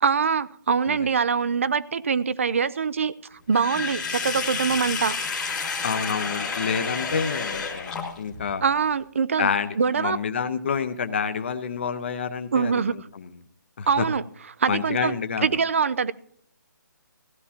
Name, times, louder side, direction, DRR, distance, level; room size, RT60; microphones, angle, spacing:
voice 1, 0.0-5.2 8.6-9.5 9.8-10.2 12.5-13.1 13.9-14.2 14.6-15.1 15.4-16.1, right 6 dB, 40° right, 18 dB, 0.4 m, -24 dB
Sink (filling or washing), 3.5-8.4, left 5 dB, 5° left, 1.2 m, -30 dB
voice 2, 5.8-8.6 9.4-12.8 13.1-13.3 13.8-14.0 14.7-15.5, left 6 dB, 35° left, 8 dB, 0.7 m, -28 dB
16.0 x 12.5 x 2.8 m, 0.65 s
hypercardioid pair, 175°, 11 cm